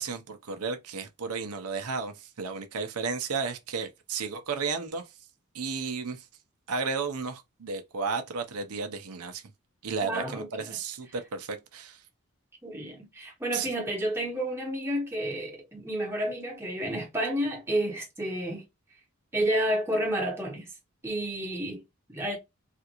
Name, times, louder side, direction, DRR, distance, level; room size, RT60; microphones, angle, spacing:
voice 1, 0.0-5.1 5.5-6.3 6.7-9.4 9.8-12.0 13.5-13.7, right 5 dB, 85° right, 0.6 m, -33 dB
voice 2, 10.0-10.5 12.6-18.6 19.3-20.7 21.0-21.8 22.1-22.4, right 1 dB, 10° right, 1.1 m, -30 dB
3.5 x 2.5 x 2.9 m
head